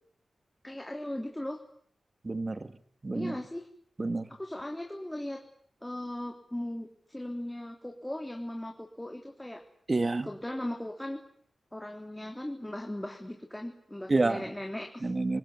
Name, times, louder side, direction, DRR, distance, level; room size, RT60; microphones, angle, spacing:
voice 1, 0.6-1.6 3.1-3.7 4.4-5.4 5.8-9.6 10.2-11.2 11.7-15.1, left 1 dB, 10° left, 2 dB, 3.5 m, -38 dB
voice 2, 2.2-2.7 3.0-3.4 4.0-4.2 9.9-10.3 14.1-14.4 15.0-15.4, right 2 dB, 30° right, 10 dB, 1.9 m, -28 dB
29.5 x 20.0 x 9.7 m, 0.62 s
wide cardioid pair, 90°, 0 cm